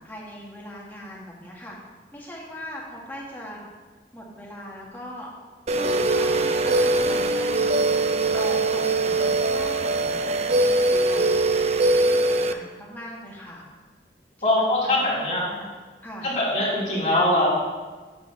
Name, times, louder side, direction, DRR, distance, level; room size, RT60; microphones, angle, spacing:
voice 1, 0.0-1.7 2.1-3.6 4.1-5.3 6.1-7.7 8.3-11.5 11.9-13.7 14.6-15.7 16.0-16.3, equal, 10° left, -4 dB, 1.6 m, -41 dB
sound 1, 5.7-12.5, right 2 dB, 35° right, 0.4 m, -22 dB
voice 2, 14.4-15.5 16.2-17.5, left 1 dB, 40° left, -7 dB, 3.0 m, -22 dB
8.4 x 4.4 x 6.8 m, 1.4 s
head